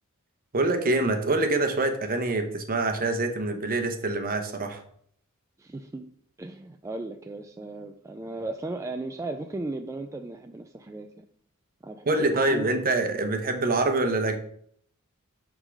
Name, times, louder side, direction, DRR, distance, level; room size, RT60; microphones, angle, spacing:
voice 1, 0.5-4.8 12.1-14.4, right 2 dB, 40° right, 6 dB, 0.9 m, -25 dB
voice 2, 5.6-6.1 6.4-11.3 11.8-12.7, right 2 dB, 15° right, 5 dB, 0.3 m, -36 dB
6.5 x 3.7 x 6.2 m, 0.65 s
head